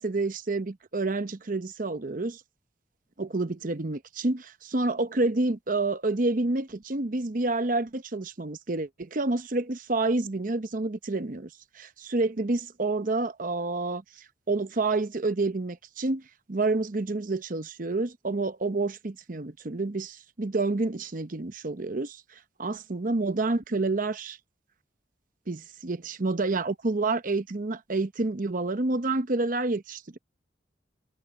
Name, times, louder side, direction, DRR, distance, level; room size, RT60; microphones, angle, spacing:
voice 1, 0.0-2.4 3.2-11.5 11.7-16.2 16.5-22.2 22.6-24.4 25.5-30.2, right 2 dB, 45° right, 0.9 m, -28 dB
head